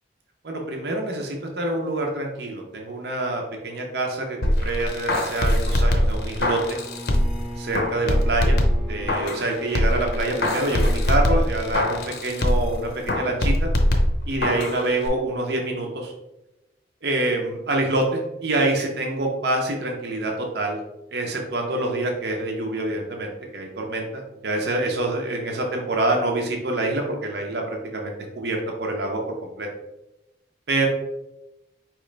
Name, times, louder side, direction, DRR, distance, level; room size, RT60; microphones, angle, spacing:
voice 1, 0.4-6.8 7.6-8.6 8.9-13.7 14.3-16.1 17.0-20.8 21.1-29.7 30.7-30.9, right 2 dB, 60° right, 1 dB, 0.7 m, -26 dB
sound 1, 4.4-7.4 7.7-9.5 9.8-12.7 13.1-14.8 15.1-15.2, left 1 dB, 60° left, 0.7 m, -22 dB
Bowed string instrument, 6.6-11.4, equal, ahead, 0.4 m, -39 dB
5.0 x 3.1 x 3.2 m, 0.92 s
head